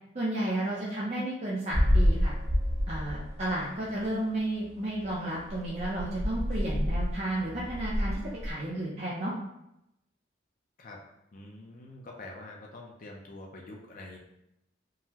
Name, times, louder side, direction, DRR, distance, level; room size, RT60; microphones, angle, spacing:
voice 1, 0.1-2.3 2.9-9.3, right 1 dB, 35° right, -7 dB, 0.5 m, -32 dB
sound 1, 1.7-3.6 3.9-4.1 4.6-4.7 5.0-5.2 5.5-8.5, equal, 65° right, 1.4 m, -28 dB
voice 2, 11.3-14.2, left 2 dB, 45° left, -1 dB, 0.4 m, -46 dB
3.7 x 2.0 x 2.8 m, 0.83 s
head